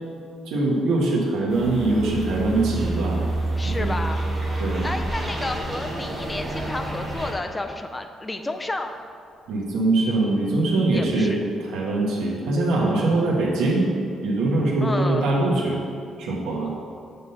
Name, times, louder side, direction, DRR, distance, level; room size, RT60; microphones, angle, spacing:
voice 1, 0.4-3.2 3.6-3.9 4.6-4.9 9.5-11.3 11.6-13.9 14.2-15.8 16.2-16.7, right 2 dB, 90° right, -3 dB, 1.5 m, -22 dB
sound 1, 1.5-7.3, right 2 dB, 15° right, 1.2 m, -28 dB
voice 2, 3.6-4.2 4.8-8.9 10.9-11.4 14.8-15.3, left 2 dB, 15° left, 6 dB, 0.4 m, -31 dB
8.2 x 3.8 x 5.6 m, 2.4 s
cardioid pair, 145°, 0 cm